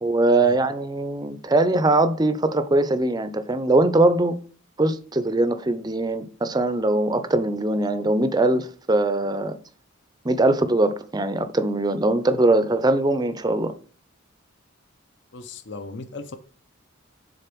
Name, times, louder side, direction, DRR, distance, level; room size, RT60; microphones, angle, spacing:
voice 1, 0.0-4.4 4.8-9.6 10.2-13.7, right 2 dB, 20° right, 0.5 m, -21 dB
voice 2, 15.3-16.4, left 3 dB, 55° left, 0.7 m, -37 dB
6.7 x 3.9 x 6.0 m
head